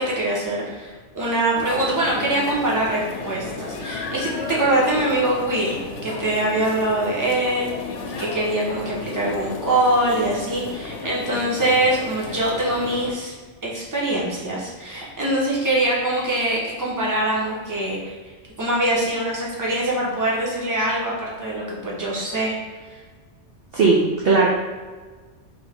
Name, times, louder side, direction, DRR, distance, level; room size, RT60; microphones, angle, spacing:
voice 1, 0.0-7.7 8.2-13.3 13.6-18.1 18.6-22.6 22.9-23.0, right 1 dB, 15° right, -5 dB, 0.9 m, -23 dB
sound 1, 1.5-13.1, left 4 dB, 80° left, 0.9 m, -33 dB
voice 2, 23.7-24.5, right 3 dB, 60° right, -3 dB, 0.7 m, -17 dB
3.5 x 3.4 x 3.4 m, 1.4 s
omnidirectional pair, 1.2 m